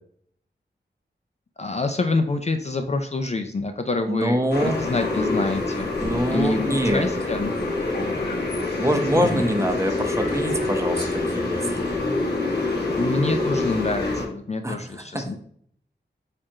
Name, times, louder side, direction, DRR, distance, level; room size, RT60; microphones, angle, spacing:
voice 1, 1.6-5.9 6.3-7.5 7.9-8.4 9.1-9.5 13.0-15.4, left 3 dB, 35° left, 6 dB, 0.4 m, -27 dB
voice 2, 4.1-4.8 6.0-7.1 8.8-11.8 14.6-15.4, equal, 15° right, 4 dB, 0.7 m, -24 dB
sound 1, 4.5-14.2, left 2 dB, 60° left, 1.1 m, -26 dB
4.4 x 2.4 x 4.8 m, 0.64 s
wide cardioid pair, 60°, 19 cm